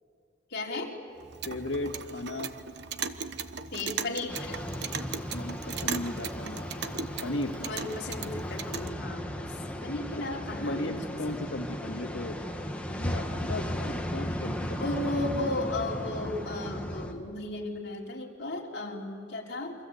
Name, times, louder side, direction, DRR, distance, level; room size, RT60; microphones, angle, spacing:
voice 1, 0.5-0.9 3.7-4.6 7.6-9.5 9.8-11.0 14.8-19.8, left 2 dB, 65° left, -1 dB, 3.8 m, -35 dB
Clock, 1.2-8.9, right 6 dB, 65° right, 1.0 m, -38 dB
voice 2, 1.5-2.5 5.3-6.7 7.2-7.6 10.1-10.2 10.7-12.4 12.9-15.3, left 1 dB, 80° left, 4 dB, 2.3 m, -36 dB
sound 1, 4.3-17.1, equal, 5° left, 1.9 m, -36 dB
29.0 x 24.5 x 8.1 m, 2.3 s
head